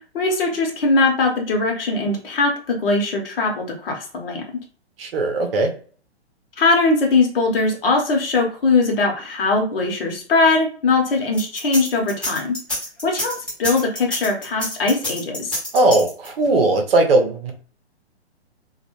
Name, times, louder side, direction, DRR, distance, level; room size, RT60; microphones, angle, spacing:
voice 1, 0.1-4.4 6.6-12.6 13.0-15.6, left 3 dB, 55° left, 1 dB, 0.9 m, -20 dB
voice 2, 5.0-5.7 15.7-17.5, right 2 dB, 60° right, 4 dB, 0.7 m, -18 dB
sound 1, 11.3-16.5, left 1 dB, 5° left, 0.8 m, -28 dB
2.3 x 2.1 x 2.9 m, 0.42 s
figure-of-eight pair, 125°, 33 cm